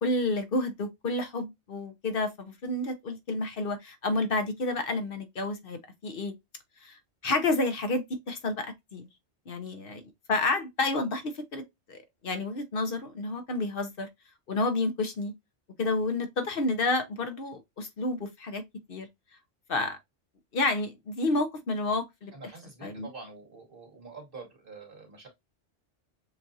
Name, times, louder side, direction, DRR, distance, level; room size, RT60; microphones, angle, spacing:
voice 1, 0.0-6.3 6.8-9.1 9.5-10.0 10.3-11.6 11.9-14.1 14.5-15.3 15.8-18.6 18.9-19.1 19.7-20.0 20.5-22.3 22.8-23.1, left 2 dB, 55° left, 0.9 m, -30 dB
voice 2, 22.3-25.3, right 4 dB, 50° right, 2.4 m, -46 dB
7.0 x 2.5 x 2.6 m
omnidirectional pair, 1.2 m